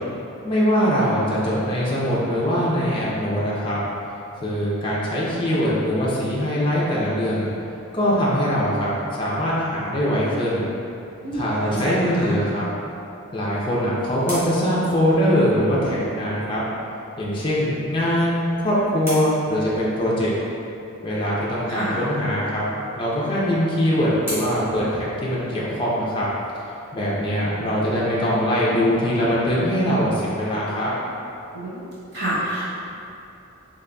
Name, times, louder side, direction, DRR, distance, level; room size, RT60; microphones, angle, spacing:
voice 1, 0.4-3.8 4.4-7.5 7.9-8.9 9.2-10.6 11.3-12.7 13.3-16.6 17.2-20.3 21.0-22.7 23.0-26.3 26.9-30.9, equal, 25° left, -7 dB, 0.5 m, -22 dB
voice 2, 11.2-12.4 21.7-22.0 31.5-31.8 32.1-32.6, right 1 dB, 50° right, -9 dB, 0.8 m, -28 dB
sound 1, 13.3-15.8 18.0-20.4 22.6-25.8, equal, 10° right, 1.3 m, -40 dB
3.8 x 3.4 x 2.2 m, 2.7 s
head